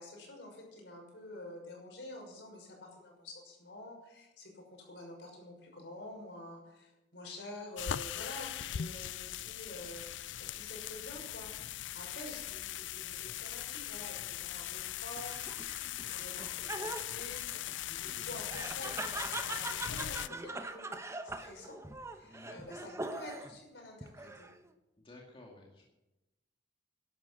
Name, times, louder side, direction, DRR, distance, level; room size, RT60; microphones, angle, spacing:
voice 1, 0.0-10.0 10.4-15.5 16.0-17.4 18.0-20.9 21.2-21.8 22.1-24.5, left 1 dB, 70° left, 1 dB, 6.0 m, -48 dB
sound 1, 7.8-20.3, left 11 dB, 85° left, 0.5 m, -40 dB
Laughter, 15.2-23.6 24.0-24.7, right 2 dB, 15° right, 1.0 m, -42 dB
voice 2, 22.3-22.7 25.0-25.8, left 2 dB, 30° left, -1 dB, 2.4 m, -54 dB
13.0 x 11.5 x 7.7 m, 0.98 s
head